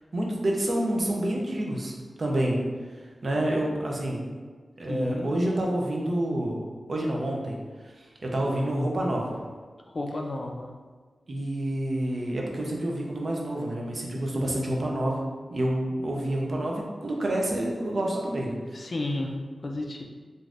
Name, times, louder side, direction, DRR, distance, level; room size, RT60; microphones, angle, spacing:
voice 1, 0.1-1.9 2.2-2.6 3.2-4.2 4.8-6.6 6.9-7.6 8.2-9.4 11.3-15.2 15.5-18.6, right 1 dB, 50° right, -1 dB, 0.5 m, -28 dB
voice 2, 4.9-5.3 9.9-10.7 18.7-19.3 19.6-20.0, left 2 dB, 45° left, 1 dB, 0.3 m, -32 dB
3.3 x 2.6 x 2.4 m, 1.5 s
wide cardioid pair, 110°, 0 cm